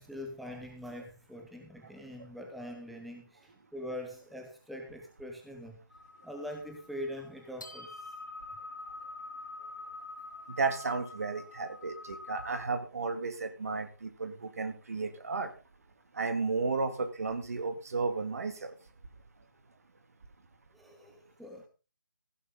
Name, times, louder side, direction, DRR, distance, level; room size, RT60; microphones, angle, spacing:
voice 1, 0.0-5.8 6.2-8.1 20.7-21.7, left 1 dB, ahead, 1 dB, 0.7 m, -43 dB
sound 1, 5.9-12.6, left 2 dB, 65° left, 2.6 m, -46 dB
voice 2, 10.6-15.5 16.1-18.8, right 4 dB, 45° right, 9 dB, 2.2 m, -33 dB
15.5 x 11.5 x 3.9 m, 0.32 s
figure-of-eight pair, 150°, 11 cm